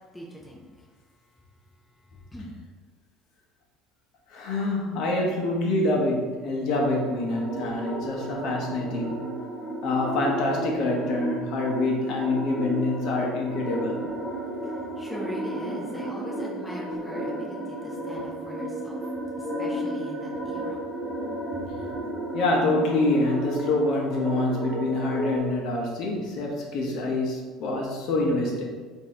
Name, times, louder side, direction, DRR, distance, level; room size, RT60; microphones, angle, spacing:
voice 1, 0.1-0.9 1.9-2.5 14.2-21.2 21.5-22.0, equal, 5° left, -5 dB, 0.5 m, -42 dB
voice 2, 4.3-9.1 9.8-14.0 22.3-28.6, left 2 dB, 50° left, -1 dB, 0.8 m, -26 dB
sound 1, 6.7-25.4, right 1 dB, 20° left, 1.0 m, -33 dB
3.6 x 2.7 x 4.2 m, 1.5 s
cardioid pair, 165°, 0 cm